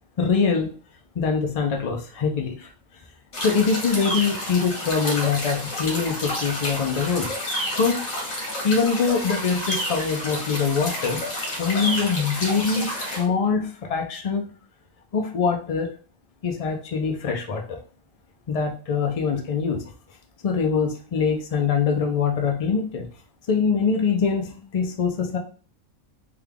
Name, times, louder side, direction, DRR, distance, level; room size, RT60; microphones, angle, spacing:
voice 1, 0.2-0.7 1.1-2.7 3.4-7.3 7.8-8.0 8.6-11.2 11.6-14.5 15.1-15.9 16.4-17.8 18.5-19.8 20.4-23.1 23.5-25.4, left 5 dB, 65° left, 2 dB, 0.3 m, -23 dB
sound 1, 3.3-13.2, left 1 dB, 85° left, 1.6 m, -30 dB
3.5 x 2.3 x 3.3 m, 0.40 s
omnidirectional pair, 1.4 m